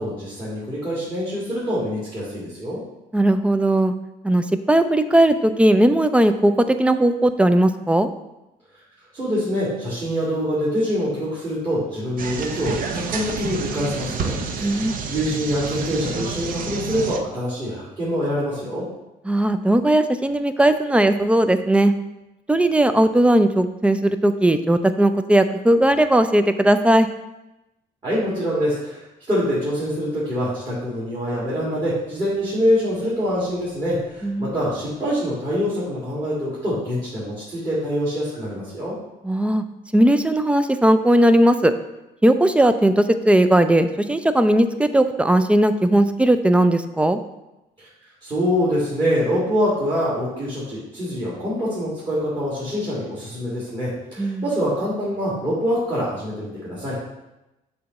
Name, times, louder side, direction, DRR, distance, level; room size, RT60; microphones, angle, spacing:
voice 1, 0.0-2.8 9.1-18.8 28.0-38.9 47.8-47.9 48.2-57.0, equal, 25° right, -9 dB, 2.2 m, -25 dB
voice 2, 3.1-3.9 4.2-8.1 14.6-15.0 19.3-21.9 22.5-27.1 34.2-34.5 39.2-39.6 39.9-41.7 42.2-47.2 54.2-54.4, right 1 dB, 5° right, 10 dB, 0.3 m, -17 dB
sound 1, 12.2-17.2, right 5 dB, 55° right, 0.6 m, -29 dB
6.7 x 2.9 x 5.3 m, 0.95 s
cardioid pair, 110°, 17 cm